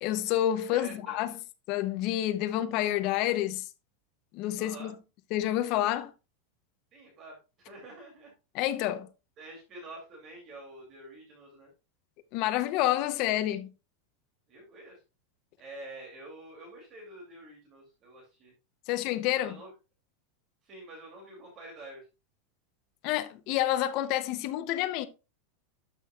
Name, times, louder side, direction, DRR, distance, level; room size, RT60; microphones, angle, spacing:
voice 1, 0.0-1.3 1.7-3.7 4.3-4.9 5.3-6.1 8.5-9.1 12.3-13.7 18.9-19.6 23.0-25.1, left 13 dB, 40° left, 0.7 m, -28 dB
voice 2, 0.7-1.3 4.6-4.9 6.9-8.3 9.4-11.7 14.5-15.0 15.6-18.5 19.4-19.7 20.6-22.1, right 2 dB, 25° right, 2.7 m, -47 dB
12.0 x 6.0 x 2.4 m
supercardioid pair, 175°, 0 cm